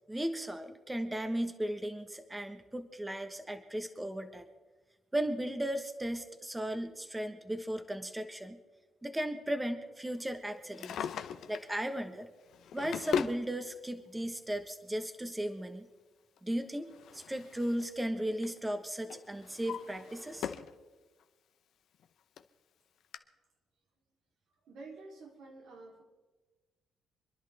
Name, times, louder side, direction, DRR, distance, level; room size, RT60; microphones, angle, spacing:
voice 1, 0.1-4.4 5.1-8.6 9.0-11.0 11.5-12.3 12.7-15.9 16.4-20.5, right 1 dB, 10° right, 7 dB, 1.1 m, -36 dB
Drawer open or close, 10.6-11.7 12.5-13.4 14.5-14.6 16.4-17.9 18.2-18.6 19.1-20.8 21.2-21.3 22.0-22.1 22.4-22.5 23.1-23.2, left 8 dB, 75° left, 0.8 m, -39 dB
voice 2, 24.7-26.0, right 3 dB, 80° right, 0 dB, 3.2 m, -49 dB
27.5 x 11.0 x 3.4 m, 1.3 s
cardioid pair, 90°, 0 cm